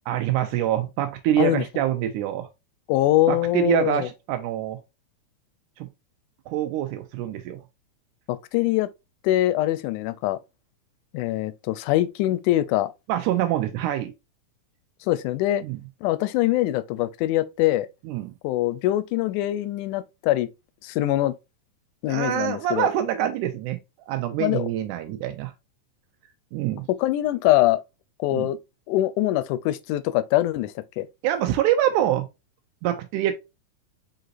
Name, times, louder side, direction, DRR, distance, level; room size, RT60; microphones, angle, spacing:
voice 1, 0.1-2.5 3.3-4.8 5.8-5.9 6.5-7.6 13.1-14.1 15.6-15.8 18.1-18.3 22.1-23.8 24.1-25.5 26.5-26.9 28.3-28.5 31.2-32.3 32.8-33.3, right 11 dB, 90° right, 2.1 m, -25 dB
voice 2, 2.9-4.1 8.3-8.9 9.2-10.4 11.1-12.9 15.0-15.6 16.0-17.9 18.4-20.5 20.8-21.4 22.0-22.9 24.4-24.7 26.9-27.8 28.2-28.6 28.9-31.1, left 15 dB, 85° left, 2.0 m, -23 dB
4.9 x 4.0 x 2.5 m
omnidirectional pair, 3.5 m